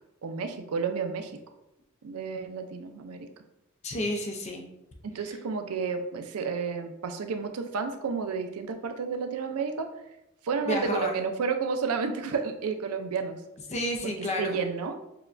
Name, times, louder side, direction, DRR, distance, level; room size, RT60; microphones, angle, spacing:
voice 1, 0.2-1.3 2.0-3.3 5.0-9.9 10.4-13.4 14.0-14.9, right 5 dB, 85° right, 7 dB, 0.4 m, -31 dB
voice 2, 3.8-4.6 10.7-11.2 13.7-14.6, left 1 dB, 30° left, 2 dB, 0.5 m, -30 dB
6.7 x 2.2 x 2.5 m, 0.89 s
head